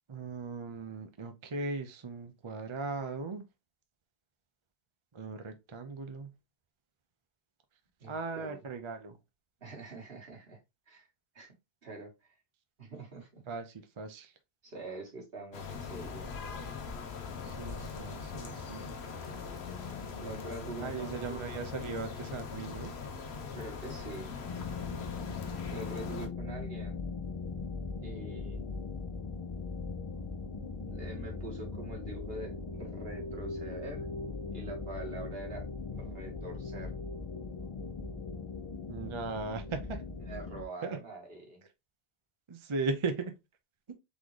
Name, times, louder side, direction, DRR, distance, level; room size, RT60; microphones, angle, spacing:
voice 1, 0.1-3.4 5.1-6.3 8.1-9.2 13.5-14.3 17.4-19.0 20.8-22.9 38.9-40.0 40.8-41.0 42.5-43.3, right 3 dB, 35° right, 0.6 m, -38 dB
voice 2, 8.0-8.6 9.6-10.6 10.9-11.1 11.3-11.5 11.8-12.4 12.8-13.4 14.6-16.3 19.2-19.3 20.2-21.5 23.5-24.4 25.7-27.0 28.0-28.7 30.9-34.1 34.5-36.9 40.3-41.6, right 2 dB, 70° right, 1.9 m, -45 dB
sound 1, 15.5-26.3, left 5 dB, 90° left, 1.1 m, -41 dB
sound 2, 24.5-40.6, left 4 dB, 40° left, 0.5 m, -39 dB
4.1 x 3.7 x 3.1 m
omnidirectional pair, 1.0 m